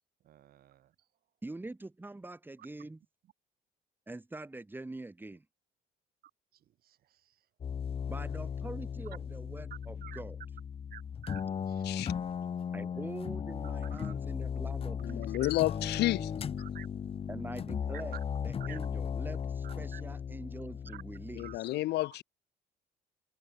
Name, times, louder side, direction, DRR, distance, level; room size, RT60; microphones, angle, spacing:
voice 1, 0.2-0.9 6.5-7.4 10.0-10.2 10.9-12.2 13.6-14.1 15.4-15.5 16.6-16.9 18.1-18.2 18.6-18.8 19.6-20.0 20.9-21.0 21.4-21.6, right 12 dB, 65° right, 3.7 m, -51 dB
voice 2, 1.4-3.0 4.1-5.5 8.1-10.4 12.7-15.3 17.3-21.5, right 2 dB, 10° right, 2.4 m, -44 dB
sound 1, 7.6-21.6, left 7 dB, 35° left, 0.8 m, -37 dB
voice 3, 15.0-16.3 21.3-22.2, left 17 dB, 80° left, 2.3 m, -31 dB
cardioid pair, 110°, 17 cm